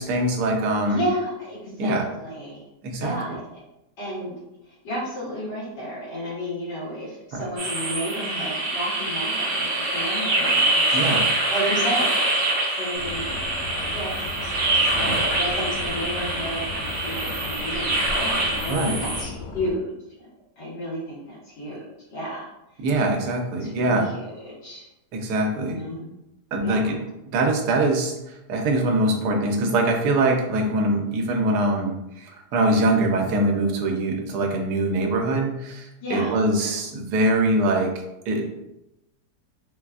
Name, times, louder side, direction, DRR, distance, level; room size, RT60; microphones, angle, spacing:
voice 1, 0.0-1.0 1.8-2.1 2.8-3.2 7.3-7.4 10.9-11.3 14.9-15.2 18.7-19.0 22.8-24.1 25.1-25.8 26.5-27.0 27.3-28.1 28.5-37.9 38.3-38.5, right 2 dB, 80° right, 2 dB, 1.1 m, -23 dB
voice 2, 0.8-2.6 3.0-3.4 4.0-4.3 4.7-12.4 12.8-13.4 13.7-19.9 20.2-20.3 20.6-21.8 22.1-22.5 23.6-24.9 25.6-26.1 26.6-26.8 36.0-36.4, equal, 85° left, -8 dB, 2.0 m, -32 dB
sound 1, 7.6-19.2, right 2 dB, 50° right, 0.9 m, -25 dB
sound 2, 12.9-19.7, left 3 dB, 70° left, 0.9 m, -36 dB
3.9 x 2.3 x 2.3 m, 0.91 s
omnidirectional pair, 1.8 m